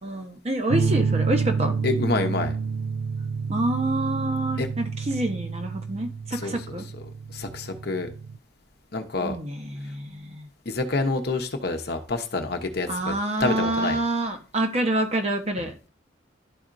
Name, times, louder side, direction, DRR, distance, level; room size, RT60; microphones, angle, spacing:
voice 1, 0.0-1.8 3.5-6.8 9.2-10.5 12.9-15.9, right 1 dB, 35° right, 5 dB, 0.9 m, -27 dB
sound 1, 0.7-8.4, right 5 dB, 55° right, 0.3 m, -29 dB
voice 2, 1.8-2.5 4.6-4.7 6.3-8.1 8.9-9.4 10.6-13.1 13.4-14.0, left 3 dB, 55° left, 6 dB, 0.8 m, -28 dB
12.0 x 4.2 x 2.5 m, 0.35 s
head